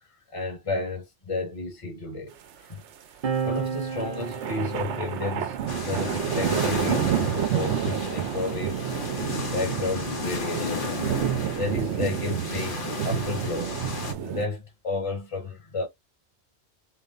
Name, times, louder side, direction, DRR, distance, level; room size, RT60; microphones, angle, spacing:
voice 1, 0.0-2.8 3.3-9.0 9.4-10.9 11.4-13.8 14.2-15.9, left 3 dB, 30° left, 1.4 m, -32 dB
sound 1, 3.2-10.2 11.1-13.0, right 6 dB, 55° right, 0.8 m, -37 dB
sound 2, 3.9-14.5, right 9 dB, 85° right, 1.0 m, -29 dB
sound 3, 5.7-14.1, left 4 dB, 50° left, 1.3 m, -34 dB
4.4 x 2.1 x 3.8 m
omnidirectional pair, 1.2 m